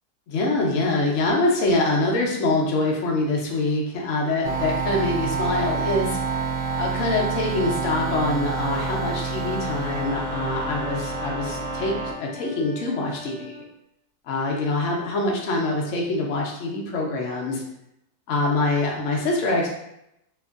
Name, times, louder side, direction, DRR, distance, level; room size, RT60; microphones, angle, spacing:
voice 1, 0.3-6.2 6.8-13.6 14.3-17.6 18.3-19.7, left 2 dB, 75° left, -1 dB, 0.7 m, -24 dB
sound 1, 4.4-12.1, right 4 dB, 75° right, 1.1 m, -28 dB
sound 2, 9.7-13.7, left 5 dB, 35° right, 1.3 m, -41 dB
2.9 x 2.5 x 2.3 m, 0.81 s
omnidirectional pair, 1.9 m